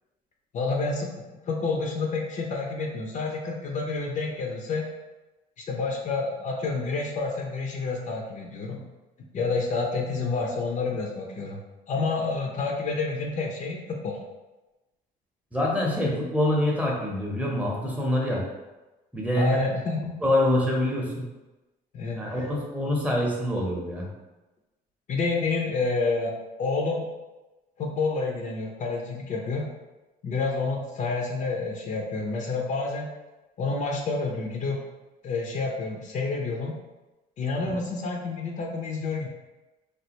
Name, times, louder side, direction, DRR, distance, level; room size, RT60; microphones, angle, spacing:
voice 1, 0.5-1.1 1.5-4.9 5.6-8.8 9.3-11.6 11.9-14.2 19.3-20.1 21.9-22.5 25.1-27.1 27.8-29.7 30.2-33.2 33.6-34.8 35.2-36.7 37.4-39.3, left 3 dB, 45° left, 1 dB, 0.5 m, -29 dB
voice 2, 15.5-18.4 19.1-19.6 20.2-21.3 22.2-24.1, left 1 dB, 10° right, -3 dB, 0.7 m, -25 dB
3.2 x 2.3 x 2.9 m, 1.1 s
cardioid pair, 110°, 17 cm